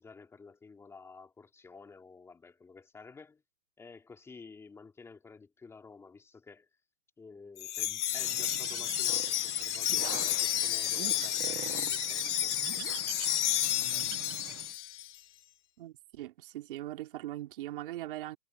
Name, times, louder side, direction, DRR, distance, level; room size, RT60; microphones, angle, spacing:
voice 1, 0.0-3.4 3.8-6.7 7.2-12.6, left 4 dB, 5° left, 3.0 m, -52 dB
Wind chime, 7.6-15.1, left 13 dB, 75° left, 0.6 m, -31 dB
Bird, 8.1-14.7, right 17 dB, 15° right, 0.6 m, -43 dB
voice 2, 15.8-18.4, right 15 dB, 45° right, 2.8 m, -40 dB
hypercardioid pair, 155°, 36 cm